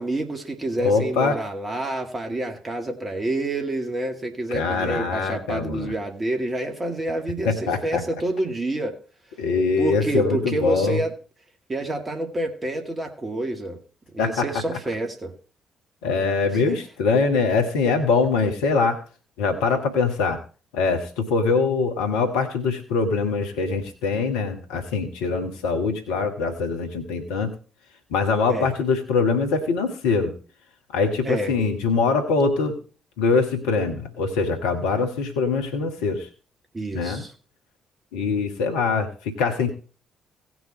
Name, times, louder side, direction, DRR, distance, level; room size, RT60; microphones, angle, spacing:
voice 1, 0.0-9.0 9.8-11.1 11.7-13.8 14.1-15.3 16.5-16.8 28.5-28.7 31.2-31.5 36.7-37.3, right 2 dB, 30° right, 3 dB, 2.2 m, -28 dB
voice 2, 0.8-1.4 4.5-5.9 7.4-8.0 9.4-11.0 14.2-14.5 16.0-19.0 19.4-20.4 20.7-27.5 28.1-30.3 30.9-32.8 33.2-36.3 36.9-37.2 38.1-39.7, left 4 dB, 70° left, 5 dB, 1.4 m, -23 dB
17.5 x 6.2 x 4.3 m, 0.36 s
figure-of-eight pair, 40°, 0 cm